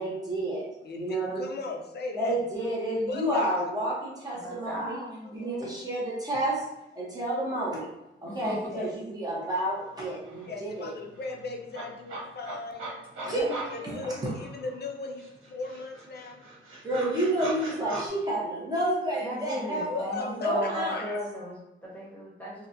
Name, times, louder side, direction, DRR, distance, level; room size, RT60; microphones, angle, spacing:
voice 1, 0.0-0.7 0.9-1.4 2.2-5.0 5.3-6.6 7.0-7.9 8.2-10.9 13.2-13.9 16.8-21.0, right 1 dB, 20° right, -6 dB, 0.8 m, -30 dB
voice 2, 0.8-2.4 3.1-3.7 5.6-5.7 8.6-8.9 10.4-13.0 13.7-16.4 19.8-21.2, left 3 dB, 50° left, 2 dB, 0.5 m, -37 dB
voice 3, 4.3-5.8 8.2-8.6 13.3-14.1 19.2-22.7, left 1 dB, 10° left, -6 dB, 1.0 m, -36 dB
sound 1, 9.9-10.0 10.2-14.8 15.2-18.1, right 2 dB, 75° right, 1.2 m, -41 dB
4.1 x 2.1 x 2.6 m, 0.92 s
wide cardioid pair, 155°, 21 cm